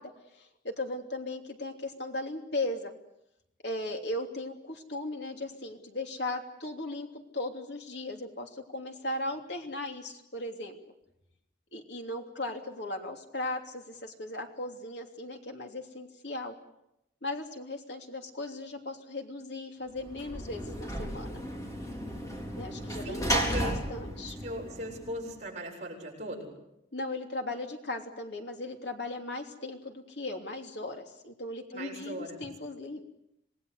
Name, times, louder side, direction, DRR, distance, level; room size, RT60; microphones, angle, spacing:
voice 1, 0.0-2.9 3.6-7.1 7.3-10.8 11.7-16.5 17.2-21.4 22.5-24.4 26.9-33.0, left 2 dB, 70° left, 3 dB, 3.1 m, -37 dB
Sliding door / Slam, 20.0-25.4, right 1 dB, 15° left, 4.0 m, -34 dB
voice 2, 23.0-23.8 24.4-26.5 31.7-32.4, equal, 40° right, -1 dB, 7.4 m, -38 dB
27.0 x 20.0 x 8.2 m, 0.84 s
head